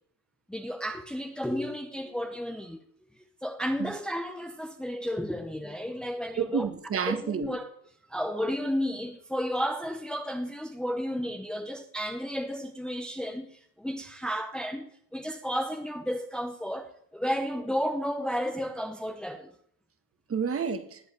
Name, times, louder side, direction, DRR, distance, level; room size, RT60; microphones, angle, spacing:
voice 1, 0.5-2.8 3.4-6.7 7.1-7.7 8.1-13.5 13.8-19.5, equal, ahead, 0.9 m, -32 dB
voice 2, 6.4-7.6 20.3-21.0, right 6 dB, 35° right, 1.7 m, -30 dB
19.5 x 7.9 x 9.2 m
cardioid pair, 155°, 41 cm